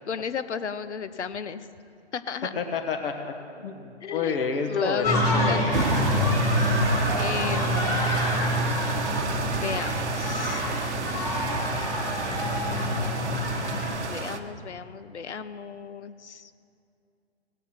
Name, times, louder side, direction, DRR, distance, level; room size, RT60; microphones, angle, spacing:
voice 1, 0.1-1.7 2.1-2.5 4.0-4.4 4.7-5.2 5.5-5.7 7.1-8.1 9.5-10.6 14.0-16.5, left 6 dB, 85° left, 13 dB, 0.7 m, -33 dB
voice 2, 2.5-5.8, left 5 dB, 55° left, 6 dB, 1.3 m, -30 dB
sound 1, 5.0-14.0, left 1 dB, 10° left, 1.5 m, -26 dB
sound 2, 5.7-14.4, right 4 dB, 85° right, 1.0 m, -31 dB
17.5 x 8.2 x 4.4 m, 2.5 s
hypercardioid pair, 145°, 34 cm